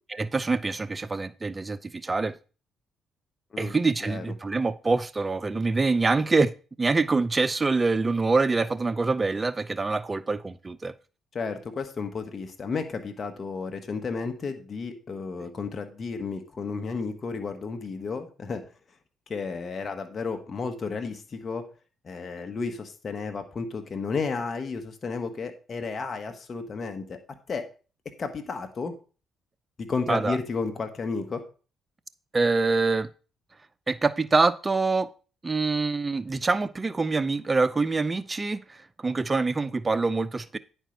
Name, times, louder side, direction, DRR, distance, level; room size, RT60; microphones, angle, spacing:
voice 1, 0.2-2.4 3.6-6.5 6.8-10.9 30.1-30.4 32.3-33.1 33.9-35.1 35.4-40.6, right 3 dB, 30° right, 0.6 m, -25 dB
voice 2, 11.3-18.6 19.3-21.6 22.0-27.2 27.5-27.7 28.0-28.9 29.8-31.4, left 4 dB, 45° left, 1.4 m, -32 dB
10.0 x 4.5 x 5.2 m
supercardioid pair, 65°, 0 cm